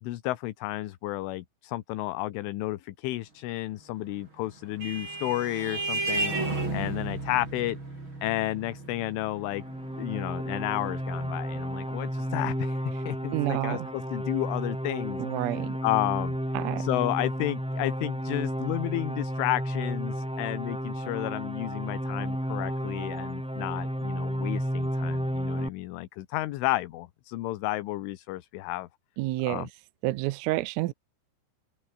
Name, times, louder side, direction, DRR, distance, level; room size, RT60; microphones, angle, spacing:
voice 1, 0.0-6.3 6.7-7.8 8.2-9.6 10.0-12.8 13.1-15.2 15.8-16.4 16.8-28.9 29.4-29.7, left 17 dB, 75° left, 3.6 m, -32 dB
Vehicle horn car horn honking, 4.2-13.2, right 3 dB, 25° right, 6.8 m, -35 dB
sound 1, 9.4-25.7, equal, ahead, 2.1 m, -32 dB
voice 2, 13.3-13.9 15.2-15.8 16.5-16.9 29.2-29.7 30.0-30.9, right 18 dB, 85° right, 3.6 m, -29 dB
open air
omnidirectional pair, 5.9 m